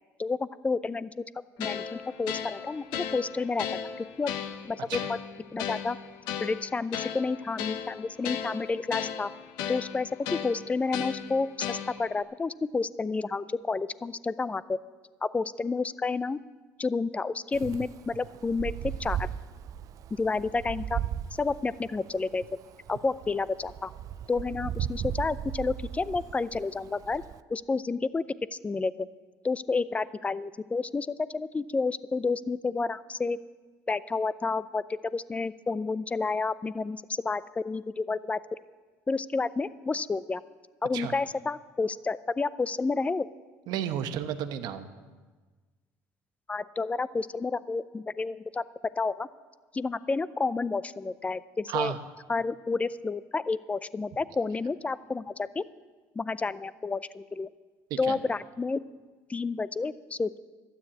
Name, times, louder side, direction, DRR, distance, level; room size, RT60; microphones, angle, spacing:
voice 1, 0.2-1.2 1.6-4.3 4.7-5.2 5.5-6.0 6.4-9.3 9.7-14.8 15.2-16.4 16.8-19.3 20.2-21.0 21.3-22.4 22.9-23.9 24.3-27.2 27.5-28.2 28.5-29.1 29.4-33.4 33.9-34.8 35.1-38.4 39.1-40.4 40.8-43.3 46.5-48.6 49.0-49.3 49.7-51.9 52.3-55.7 56.2-57.5 58.0-58.8 59.3-60.4, left 4 dB, 20° left, 17 dB, 0.5 m, -30 dB
sound 1, 1.6-12.2, left 8 dB, 80° left, 0.9 m, -36 dB
Wind, 17.5-27.4, right 10 dB, 55° right, 0.5 m, -37 dB
voice 2, 43.7-44.9 51.7-52.0 57.9-58.2, right 10 dB, 70° right, 9 dB, 1.0 m, -32 dB
12.5 x 9.4 x 8.5 m, 1.4 s
supercardioid pair, 90°, 7 cm